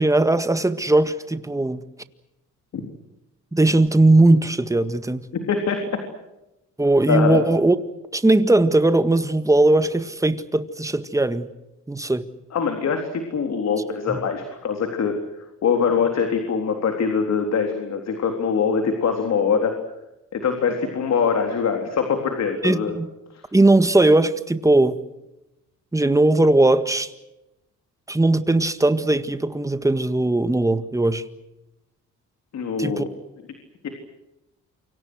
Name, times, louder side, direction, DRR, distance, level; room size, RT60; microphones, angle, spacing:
voice 1, 0.0-1.8 3.5-5.2 6.8-7.8 8.1-11.5 11.9-12.3 14.1-14.2 22.6-23.1 23.5-25.0 25.9-27.1 28.1-31.2 32.8-33.0, right 2 dB, 10° right, 1.8 m, -19 dB
voice 2, 5.5-6.0 7.1-7.4 12.5-19.7 20.3-23.0 23.3-23.4 32.5-33.1 33.8-33.9, left 6 dB, 60° left, 3.8 m, -23 dB
28.5 x 25.5 x 6.4 m
cardioid pair, 90°, 30 cm